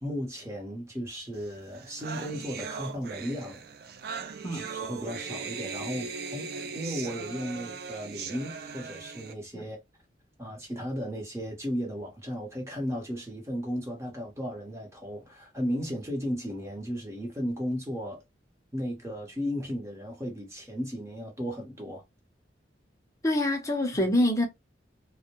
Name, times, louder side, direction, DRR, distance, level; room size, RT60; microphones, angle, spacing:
voice 1, 0.0-3.6 4.5-9.8 10.4-18.2 18.7-22.0, equal, 15° right, 0.8 m, -35 dB
sound 1, 1.5-1.6 1.7-9.3, right 5 dB, 55° right, 0.4 m, -39 dB
voice 2, 23.2-24.5, left 1 dB, 15° left, 0.6 m, -25 dB
2.1 x 2.1 x 2.9 m
head